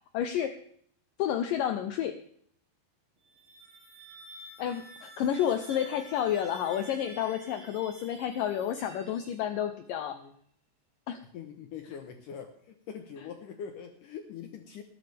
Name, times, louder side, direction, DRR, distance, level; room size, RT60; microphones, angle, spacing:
voice 1, 0.1-0.6 1.2-2.2 4.6-10.2 11.1-11.2, left 10 dB, 90° left, 8 dB, 1.9 m, -30 dB
sound 1, 3.2-9.8, right 2 dB, 45° right, 3.0 m, -50 dB
voice 2, 11.3-14.8, left 7 dB, 70° left, 6 dB, 2.1 m, -43 dB
19.5 x 11.5 x 3.5 m, 0.64 s
omnidirectional pair, 5.0 m